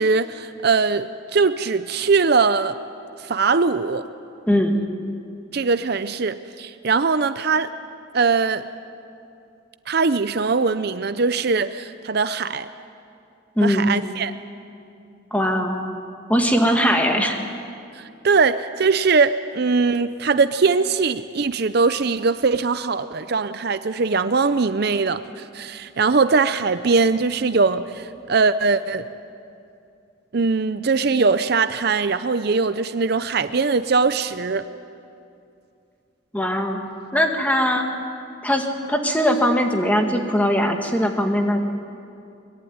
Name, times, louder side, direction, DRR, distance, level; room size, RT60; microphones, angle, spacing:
voice 1, 0.0-2.8 3.2-4.0 5.5-7.7 8.1-8.6 9.9-12.7 13.6-14.3 17.9-29.1 30.3-34.6, right 4 dB, 50° right, 12 dB, 0.6 m, -21 dB
voice 2, 4.5-4.8 13.6-13.9 15.3-15.8 16.3-17.4 36.3-36.8 37.1-37.9 38.4-41.6, equal, 5° left, 3 dB, 2.0 m, -20 dB
23.5 x 21.5 x 9.5 m, 2.6 s
head